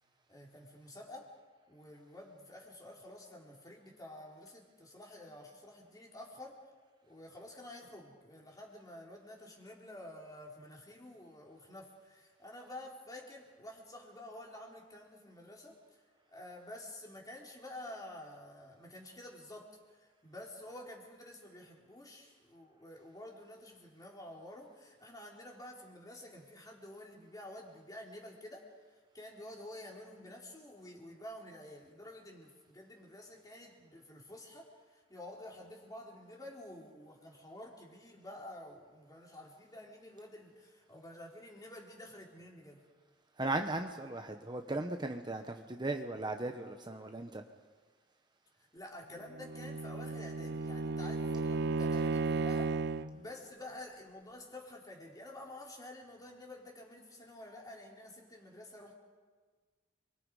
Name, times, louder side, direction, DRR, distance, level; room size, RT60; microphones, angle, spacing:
voice 1, 0.3-1.3 1.7-6.6 7.0-16.0 16.3-28.7 29.1-42.8 48.7-52.8 53.1-58.9, left 1 dB, 20° left, -1 dB, 3.9 m, -50 dB
voice 2, 43.4-47.4, right 2 dB, 25° right, 5 dB, 1.0 m, -37 dB
Bowed string instrument, 49.3-53.2, right 3 dB, 60° right, 0.7 m, -34 dB
29.0 x 23.5 x 4.9 m, 1.5 s
head